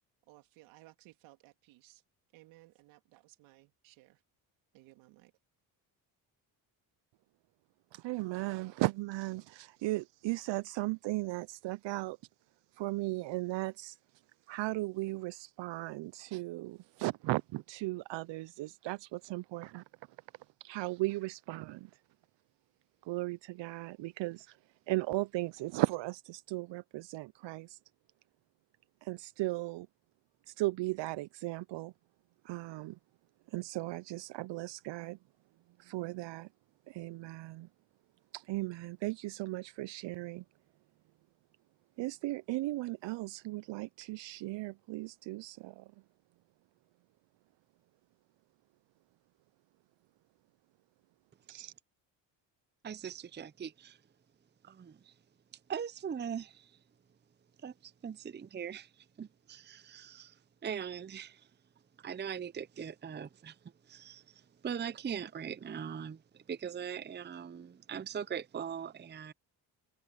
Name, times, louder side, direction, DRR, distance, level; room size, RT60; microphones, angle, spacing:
voice 1, 0.3-2.0 2.3-4.2 4.7-5.3, right 19 dB, 85° right, 3.5 m, -59 dB
voice 2, 7.9-12.2 12.7-14.0 14.5-19.8 20.6-21.9 23.1-24.6 24.9-27.8 29.0-29.9 30.5-31.9 32.4-33.0 33.5-35.2 35.8-36.5 36.9-37.7 38.3-40.4 42.0-45.8 51.5-51.7, right 19 dB, 65° right, 0.7 m, -36 dB
voice 3, 52.8-54.0 54.6-55.1 55.7-56.8 57.6-61.5 62.0-63.6 63.8-69.3, right 7 dB, 25° right, 0.7 m, -41 dB
supercardioid pair, 65°, 46 cm